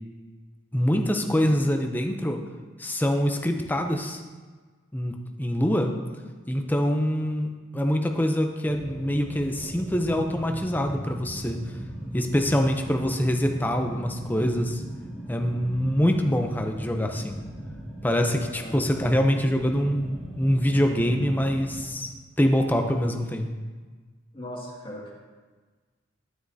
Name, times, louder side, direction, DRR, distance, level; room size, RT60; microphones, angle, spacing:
voice 1, 0.7-2.4 2.8-4.2 4.9-5.9 6.5-11.6 12.1-14.8 15.3-17.4 18.0-22.1 22.4-23.5, equal, 10° left, 4 dB, 0.6 m, -25 dB
sound 1, 8.6-21.9, right 1 dB, 5° right, 2.2 m, -38 dB
voice 2, 18.3-19.2 24.3-25.1, equal, 25° left, -5 dB, 2.0 m, -39 dB
9.5 x 9.4 x 2.7 m, 1.4 s
head